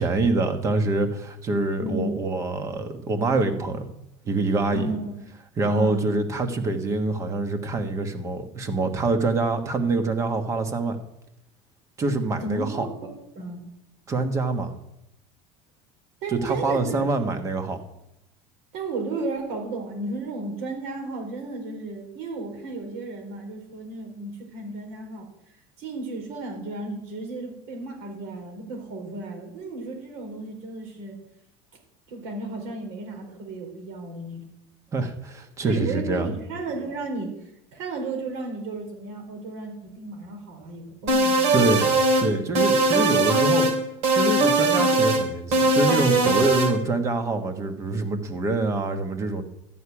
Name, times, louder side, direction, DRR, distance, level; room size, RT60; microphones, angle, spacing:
voice 1, 0.0-3.9 4.2-4.9 5.6-11.0 12.0-12.9 14.1-14.7 16.3-17.8 34.9-36.3 41.5-43.7 44.1-49.4, right 3 dB, 20° right, 8 dB, 1.2 m, -25 dB
voice 2, 1.8-2.1 4.7-5.1 5.7-6.1 12.4-12.9 13.3-13.7 16.2-17.1 18.7-25.3 25.8-31.2 32.1-34.5 35.6-37.3 37.7-41.4, right 3 dB, 70° right, 3 dB, 4.3 m, -33 dB
sound 1, 41.1-42.3 42.6-43.8 44.0-45.2 45.5-46.7, right 2 dB, 50° right, 2.8 m, -20 dB
13.0 x 6.6 x 9.7 m, 0.85 s
cardioid pair, 175°, 13 cm